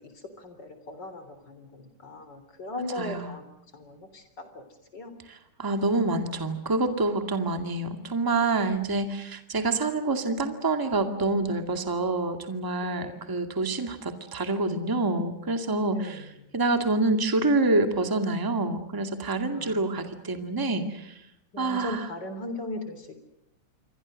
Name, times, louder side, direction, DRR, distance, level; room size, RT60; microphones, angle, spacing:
voice 1, 0.0-3.4 3.7-4.6 4.9-5.1 12.8-13.3 15.9-16.5 19.5-20.2 21.5-23.1, left 1 dB, 35° left, 9 dB, 4.1 m, -39 dB
voice 2, 3.0-3.3 5.6-16.3 16.5-21.2 21.6-22.0, right 2 dB, 10° right, 6 dB, 1.7 m, -27 dB
28.0 x 24.0 x 6.5 m, 0.82 s
omnidirectional pair, 3.4 m